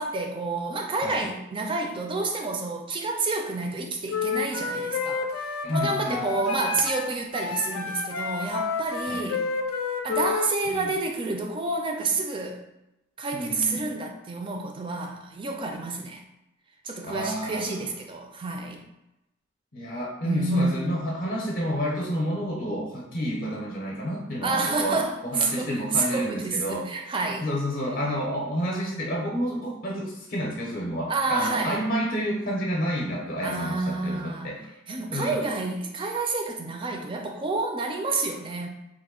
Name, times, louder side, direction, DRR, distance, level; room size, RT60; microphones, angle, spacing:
voice 1, 0.0-9.4 10.0-12.6 13.2-16.2 16.8-18.8 20.2-21.1 24.4-27.5 31.1-31.8 33.4-34.5 34.9-38.7, right 3 dB, 25° right, 2 dB, 0.4 m, -29 dB
Wind instrument woodwind instrument, 4.1-7.0 7.3-10.5, left 5 dB, 90° left, 0.4 m, -30 dB
voice 2, 5.6-6.2 9.1-9.3 10.7-10.9 13.3-13.8 17.0-17.8 19.7-26.9 27.4-34.6 35.1-35.5, equal, 45° left, -2 dB, 0.6 m, -30 dB
3.0 x 2.1 x 3.6 m, 0.92 s
head